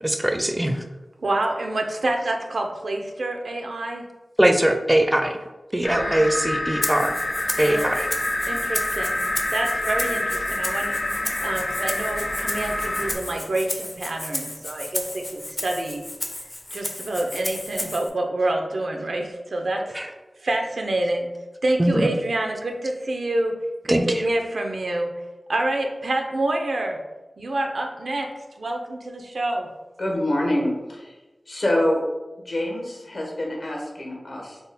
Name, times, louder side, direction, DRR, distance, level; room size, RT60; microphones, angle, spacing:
voice 1, 0.0-0.8 4.4-5.4 5.7-7.2 7.6-8.1 19.9-20.1 21.8-22.1 23.9-24.3, right 1 dB, 20° right, 5 dB, 0.4 m, -21 dB
voice 2, 1.2-4.1 5.8-6.3 7.7-7.9 8.5-11.0 11.4-16.0 16.7-19.8 20.4-21.3 21.6-23.6 23.8-25.1 25.5-27.0 27.4-28.3 28.6-29.7, right 2 dB, 75° right, 3 dB, 0.5 m, -27 dB
sound 1, 5.8-13.1, left 1 dB, 85° left, 0.6 m, -27 dB
Rattle (instrument), 6.8-18.1, left 1 dB, 40° left, 0.5 m, -33 dB
voice 3, 30.0-31.1 31.5-32.0 32.4-34.6, left 1 dB, 65° left, -1 dB, 0.9 m, -25 dB
3.5 x 2.1 x 4.0 m, 1.1 s
cardioid pair, 45°, 0 cm